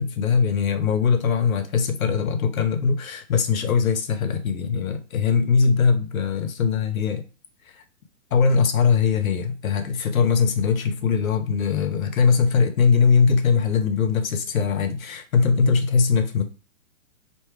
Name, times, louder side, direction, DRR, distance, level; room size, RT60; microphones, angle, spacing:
voice 1, 0.0-7.2 7.7-7.8 8.3-16.4, left 5 dB, 85° left, 0.9 m, -21 dB
4.6 x 2.9 x 3.2 m
hypercardioid pair, 145°, 40 cm